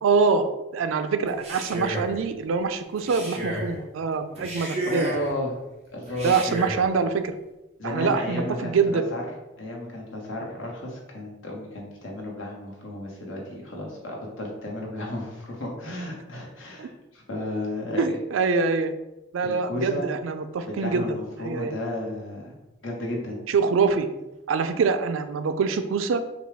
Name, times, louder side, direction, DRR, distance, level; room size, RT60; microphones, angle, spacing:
voice 1, 0.0-5.1 6.2-7.4 7.8-9.0 16.8-16.9 18.0-18.9 19.3-21.7 23.5-24.1 24.5-26.2, right 5 dB, 90° right, 9 dB, 0.4 m, -24 dB
Male speech man speaking, 1.3-2.2 3.0-3.7 4.3-5.3 6.1-6.8, right 1 dB, 35° right, 1.2 m, -32 dB
voice 2, 4.9-5.5 5.9-6.4 7.8-9.2 9.6-18.0 19.4-20.1 20.6-22.5 22.8-23.4, left 1 dB, 80° left, -1 dB, 1.1 m, -33 dB
5.2 x 2.3 x 3.3 m, 1.0 s
head